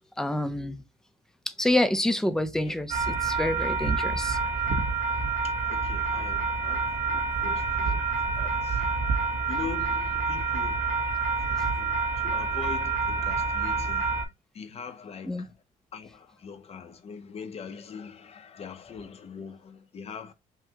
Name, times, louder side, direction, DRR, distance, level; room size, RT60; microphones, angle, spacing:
voice 1, 0.2-0.8 1.5-4.4 15.3-15.5, left 1 dB, 5° left, 0.6 m, -27 dB
sound 1, 2.9-14.2, right 4 dB, 50° right, 0.9 m, -27 dB
voice 2, 5.4-8.1 8.4-8.9 9.5-15.5 15.9-20.3, left 6 dB, 35° left, 0.8 m, -42 dB
5.7 x 2.2 x 2.9 m
cardioid pair, 110°, 17 cm